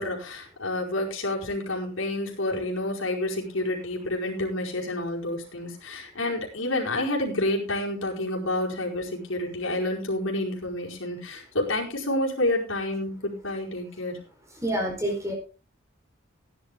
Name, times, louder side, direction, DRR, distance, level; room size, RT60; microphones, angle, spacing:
voice 1, 0.0-14.2, left 1 dB, 85° left, -1 dB, 4.8 m, -29 dB
voice 2, 14.6-15.3, right 1 dB, 15° right, 1 dB, 4.6 m, -27 dB
16.0 x 10.5 x 3.7 m, 0.33 s
head